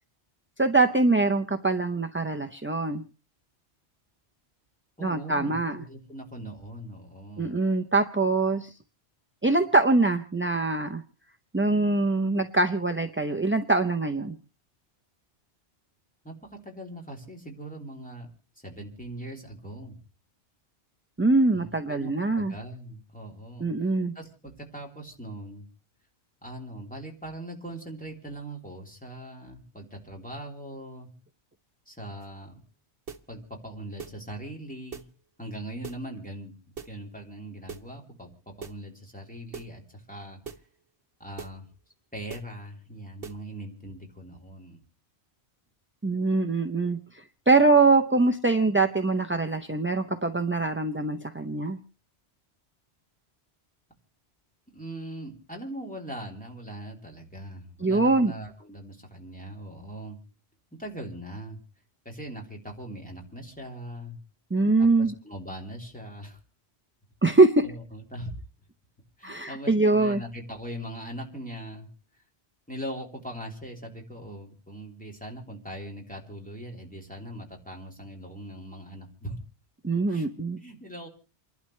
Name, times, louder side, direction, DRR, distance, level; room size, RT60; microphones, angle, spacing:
voice 1, 0.6-3.0 5.0-5.8 7.4-8.7 9.4-11.0 11.5-14.4 21.2-22.5 23.6-24.1 46.0-51.8 57.8-58.3 64.5-65.1 67.2-67.6 69.2-70.2 79.8-80.6, right 3 dB, 15° right, 5 dB, 0.5 m, -23 dB
voice 2, 5.0-7.6 16.2-18.3 18.6-20.0 21.5-23.7 24.1-25.6 26.4-31.1 31.9-32.6 33.3-35.0 35.4-40.4 41.2-41.7 42.1-44.8 54.7-60.2 60.8-61.6 62.0-64.2 64.8-66.4 67.3-68.3 69.2-71.9 72.7-79.4 80.1-80.3 80.6-81.1, right 1 dB, 5° left, 0 dB, 3.2 m, -40 dB
sound 1, 32.2-32.4 33.1-33.3 34.0-34.2 34.9-35.1 35.8-36.1 36.8-37.0 37.7-37.9 38.6-38.8 39.5-39.8 40.4-40.7 41.4-41.6 42.3-42.5 43.2-43.5, right 6 dB, 55° right, 1.3 m, -40 dB
29.0 x 11.5 x 3.2 m, 0.33 s
omnidirectional pair, 1.2 m